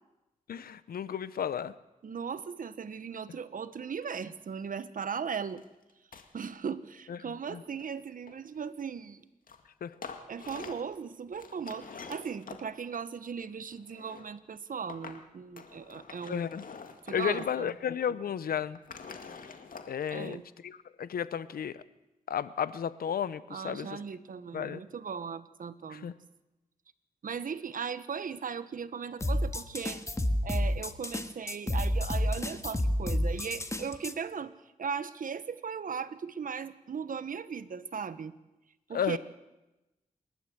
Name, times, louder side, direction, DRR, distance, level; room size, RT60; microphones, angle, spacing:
voice 1, 0.5-1.7 7.1-7.2 7.5-7.6 9.8-9.9 16.3-16.6 17.1-18.8 19.9-21.8 22.3-24.0 24.5-24.8 25.9-26.1 38.9-39.2, left 8 dB, 85° left, 16 dB, 0.8 m, -33 dB
voice 2, 2.0-5.6 6.3-9.2 10.3-16.5 17.0-17.7 20.1-20.4 23.5-26.1 27.2-30.0 30.4-34.5 34.8-38.3 38.9-39.2, right 6 dB, 65° right, 13 dB, 1.2 m, -38 dB
sound 1, 5.6-5.7 5.9-6.3 7.3-8.6 9.5-9.6 9.9-10.9 11.3-12.6 13.6-14.3 14.9-15.2 15.6-17.7 18.0-18.1 18.6-20.3, left 5 dB, 70° left, 2.1 m, -46 dB
sound 2, 29.2-34.1, left 1 dB, 20° left, 1.8 m, -30 dB
27.5 x 12.0 x 8.0 m, 1.0 s
cardioid pair, 55°, 15 cm